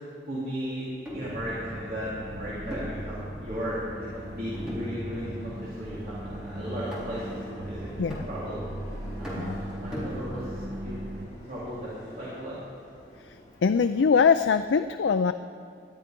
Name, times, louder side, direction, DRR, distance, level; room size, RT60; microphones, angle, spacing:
voice 1, 0.3-7.9 8.3-8.6 9.2-11.0 11.5-12.6, equal, 50° right, -10 dB, 3.5 m, -36 dB
sound 1, 1.0-1.4 2.7-3.7 4.5-5.3 5.6-6.0 6.9-7.4 8.1-8.8 9.2-10.7, equal, 5° right, 3.5 m, -39 dB
sound 2, 1.1-11.3, right 1 dB, 80° right, 1.4 m, -38 dB
Subway metro underground, 2.4-14.8, equal, 20° left, 4.9 m, -50 dB
voice 2, 13.6-15.3, left 5 dB, 85° left, 10 dB, 0.4 m, -22 dB
19.5 x 12.5 x 5.3 m, 2.2 s
head